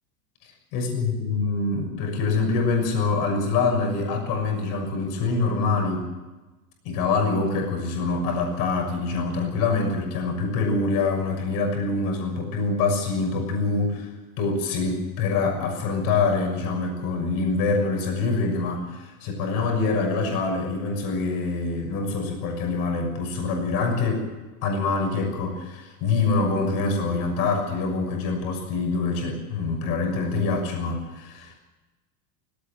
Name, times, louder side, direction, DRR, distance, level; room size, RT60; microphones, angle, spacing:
voice 1, 0.7-6.1 6.8-24.3 24.6-31.6, left 3 dB, 50° left, 3 dB, 6.5 m, -25 dB
18.5 x 17.5 x 9.0 m, 1.2 s
supercardioid pair, 150°, 46 cm